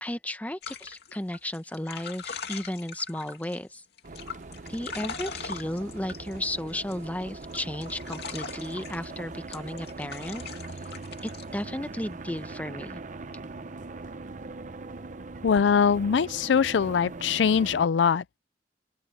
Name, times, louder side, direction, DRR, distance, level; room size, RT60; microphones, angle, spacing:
voice 1, 0.0-3.8 4.7-10.4 11.2-13.0, left 1 dB, 10° left, 1.0 m, -34 dB
sound 1, 0.6-3.6 4.0-7.0 7.4-9.0 9.5-11.4, left 6 dB, 65° left, 2.3 m, -40 dB
sound 2, 4.0-17.9, right 3 dB, 45° right, 0.8 m, -41 dB
voice 2, 15.4-18.4, left 6 dB, 80° left, 0.4 m, -22 dB
open air
head